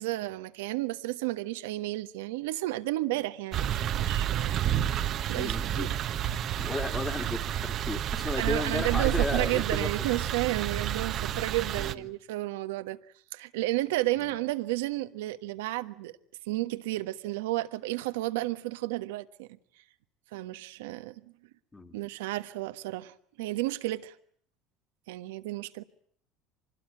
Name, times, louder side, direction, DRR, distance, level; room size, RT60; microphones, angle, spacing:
voice 1, 0.0-4.6 5.3-5.9 8.4-13.0 13.3-16.2 16.5-19.5 20.3-21.2 21.9-24.2 25.1-25.8, right 18 dB, 80° right, 1.3 m, -32 dB
sound 1, 3.5-11.9, right 11 dB, 50° right, 1.2 m, -30 dB
voice 2, 5.4-5.9 6.6-10.2 11.8-12.0 14.2-14.3 21.7-22.0, left 3 dB, 15° left, 2.6 m, -35 dB
24.5 x 20.5 x 9.0 m
supercardioid pair, 90°, 0 cm